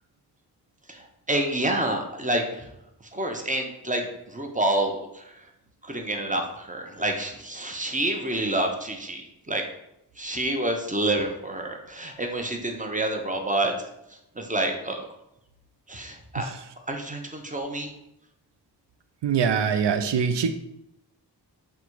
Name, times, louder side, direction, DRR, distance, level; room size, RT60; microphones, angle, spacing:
voice 1, 0.9-2.7 3.1-5.4 5.8-9.6 10.2-13.7 14.4-15.1 15.9-16.5 16.9-17.9, right 1 dB, 20° right, 3 dB, 0.7 m, -28 dB
voice 2, 19.2-20.5, right 7 dB, 80° right, 8 dB, 0.5 m, -23 dB
3.8 x 2.3 x 4.5 m, 0.83 s
wide cardioid pair, 50°, 42 cm